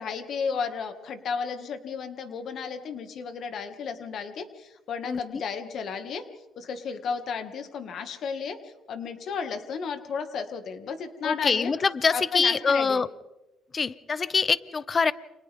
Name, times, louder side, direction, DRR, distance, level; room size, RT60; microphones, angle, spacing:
voice 1, 0.0-6.2 6.6-11.7 12.1-13.0, left 6 dB, 55° left, 7 dB, 2.2 m, -33 dB
voice 2, 5.1-5.4 11.2-13.1 13.7-15.1, left 5 dB, 30° left, 17 dB, 0.8 m, -24 dB
30.0 x 26.5 x 3.7 m, 1.0 s
cardioid pair, 115°, 0 cm